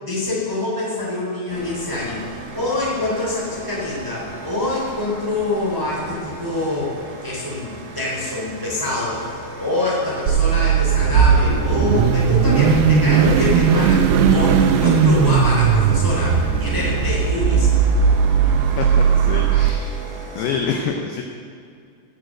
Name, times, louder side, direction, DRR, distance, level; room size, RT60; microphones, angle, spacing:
voice 1, 0.0-2.2 2.5-7.0 7.2-17.7, left 2 dB, 5° right, -5 dB, 2.3 m, -25 dB
sound 1, 1.5-20.6, right 2 dB, 55° right, 1.6 m, -37 dB
Car / Idling / Accelerating revving vroom, 10.3-19.7, right 6 dB, 80° right, 2.4 m, -17 dB
voice 2, 18.6-20.0 20.4-21.2, left 6 dB, 75° left, 3 dB, 2.4 m, -27 dB
15.5 x 6.8 x 7.8 m, 2.3 s
omnidirectional pair, 5.3 m